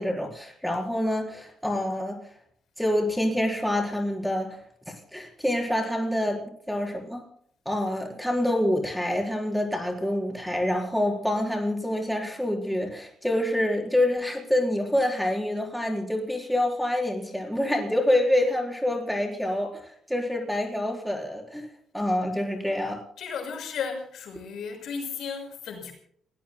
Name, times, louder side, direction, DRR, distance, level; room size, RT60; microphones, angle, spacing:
voice 1, 0.0-2.2 2.8-4.6 5.1-6.4 6.7-7.2 7.6-21.7 21.9-23.0, left 1 dB, ahead, -1 dB, 4.4 m, -26 dB
voice 2, 23.2-25.9, left 6 dB, 70° left, 3 dB, 6.2 m, -34 dB
29.5 x 18.0 x 2.2 m, 0.64 s
cardioid pair, 90°, 0 cm